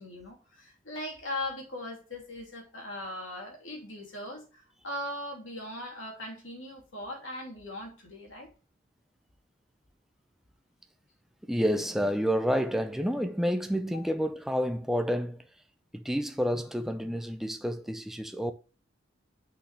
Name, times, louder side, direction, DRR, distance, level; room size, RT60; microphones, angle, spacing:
voice 1, 0.0-8.5 13.9-14.0, left 1 dB, 75° left, 3.0 m, -39 dB
voice 2, 11.4-15.5 15.9-18.5, equal, ahead, 0.5 m, -29 dB
6.2 x 6.0 x 3.3 m
head